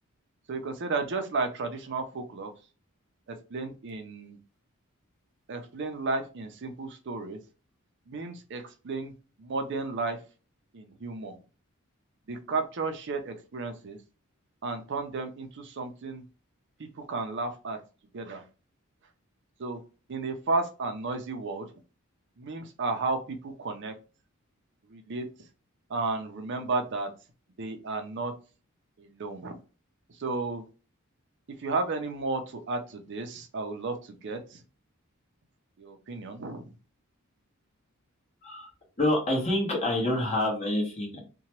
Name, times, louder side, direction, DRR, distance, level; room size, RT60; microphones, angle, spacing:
voice 1, 0.5-2.5 3.3-4.4 5.5-7.4 8.1-9.1 9.4-10.2 10.7-11.4 12.3-14.0 14.6-16.2 16.8-17.8 18.1-18.5 19.6-19.8 20.1-21.7 22.4-24.0 24.9-25.5 25.9-27.1 27.6-28.3 29.0-29.6 30.1-30.6 31.5-34.6 35.8-36.7, right 3 dB, 55° right, 6 dB, 0.5 m, -33 dB
voice 2, 39.0-41.2, left 1 dB, 30° left, -1 dB, 1.2 m, -27 dB
2.8 x 2.2 x 2.9 m, 0.33 s
head